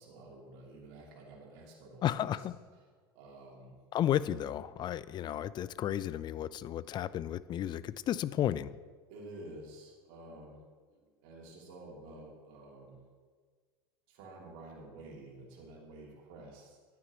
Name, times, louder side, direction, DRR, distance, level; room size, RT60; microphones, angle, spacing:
voice 1, 0.0-2.5 3.1-3.8 9.1-10.6 10.9-13.0 14.1-16.8, right 2 dB, 60° right, -2 dB, 2.7 m, -50 dB
voice 2, 2.0-2.6 3.9-8.7, left 11 dB, 35° left, 17 dB, 0.4 m, -33 dB
11.5 x 9.7 x 3.0 m, 1.5 s
hypercardioid pair, 85°, 13 cm